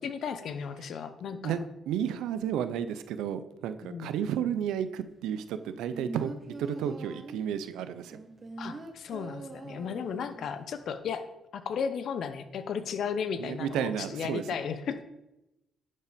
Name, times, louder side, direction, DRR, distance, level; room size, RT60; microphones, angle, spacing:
voice 1, 0.0-1.6 3.8-4.2 8.6-11.3 11.5-15.0, left 6 dB, 65° left, 11 dB, 0.8 m, -35 dB
voice 2, 1.4-8.2 13.4-14.4, right 9 dB, 90° right, 12 dB, 0.6 m, -32 dB
sound 1, 5.6-7.5 8.1-10.5 10.8-10.9, right 3 dB, 30° right, 1.2 m, -43 dB
10.5 x 5.5 x 5.1 m, 0.93 s
cardioid pair, 90°, 0 cm